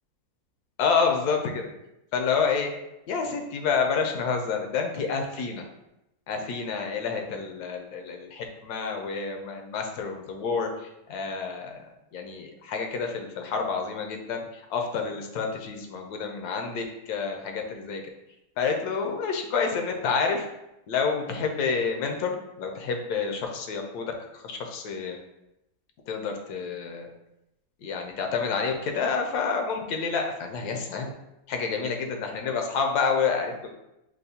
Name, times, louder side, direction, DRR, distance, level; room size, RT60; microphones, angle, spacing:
voice 1, 0.8-1.7 2.1-2.7 3.1-5.6 6.3-11.8 12.1-18.0 18.6-20.5 20.9-25.2 26.1-27.1 27.8-31.1 31.5-33.7, left 5 dB, 85° left, 3 dB, 1.1 m, -29 dB
5.2 x 2.0 x 2.7 m, 0.88 s
omnidirectional pair, 1.6 m